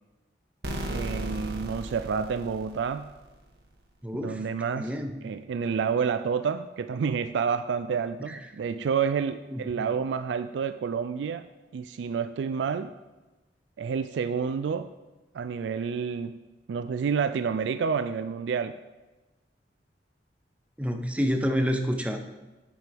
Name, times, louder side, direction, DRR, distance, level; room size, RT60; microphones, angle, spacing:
sound 1, 0.6-3.3, right 1 dB, 65° right, 1.3 m, -35 dB
voice 1, 0.9-3.1 4.1-4.9 5.2-11.5 11.7-12.9 13.8-14.9 15.3-16.4 16.7-18.7, right 6 dB, 90° right, 11 dB, 0.3 m, -29 dB
voice 2, 4.0-4.4 4.7-5.1 8.3-8.4 9.5-9.9 20.8-22.2, equal, 10° right, 5 dB, 0.6 m, -28 dB
9.4 x 8.3 x 3.5 m, 1.1 s
head